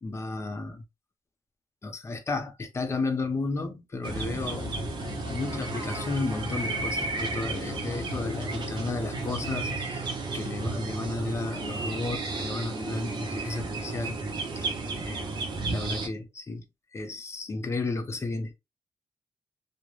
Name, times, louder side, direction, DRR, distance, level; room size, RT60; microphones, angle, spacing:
voice 1, 0.0-0.8 1.8-4.8 5.3-14.2 14.6-14.7 15.0-15.3 15.7-16.6 16.9-18.5, left 3 dB, 30° left, 0.5 m, -33 dB
sound 1, 4.0-16.1, right 3 dB, 55° right, 0.6 m, -33 dB
sound 2, 4.5-10.3, left 6 dB, 70° left, 0.8 m, -41 dB
2.3 x 2.0 x 3.0 m
wide cardioid pair, 130°, 10 cm